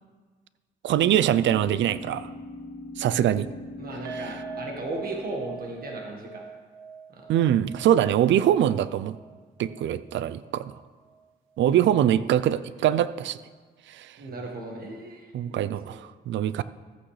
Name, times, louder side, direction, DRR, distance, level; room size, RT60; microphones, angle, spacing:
voice 1, 0.8-2.3 3.0-3.5 7.3-9.2 9.6-10.7 11.6-13.4 13.9-14.1 15.3-16.6, right 11 dB, 70° right, 15 dB, 0.4 m, -23 dB
sound 1, 1.0-6.0, left 2 dB, 60° left, 1.4 m, -41 dB
voice 2, 3.8-6.5 7.1-7.3 14.2-15.3 15.8-16.0, right 2 dB, 50° right, 1 dB, 1.6 m, -36 dB
sound 2, 4.0-11.3 11.5-11.7 12.1-12.2, right 6 dB, 85° right, 0.9 m, -44 dB
14.0 x 8.7 x 3.3 m, 1.4 s
cardioid pair, 90°, 20 cm